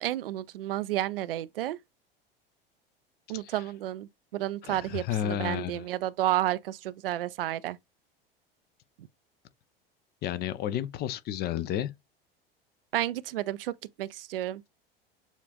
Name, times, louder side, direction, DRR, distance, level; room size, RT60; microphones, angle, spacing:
voice 1, 0.0-1.8 3.3-7.8 12.9-14.6, right 14 dB, 70° right, 0.4 m, -31 dB
voice 2, 4.6-5.9 10.2-11.9, left 11 dB, 35° left, 0.5 m, -32 dB
7.1 x 2.4 x 2.2 m
figure-of-eight pair, 75°, 30 cm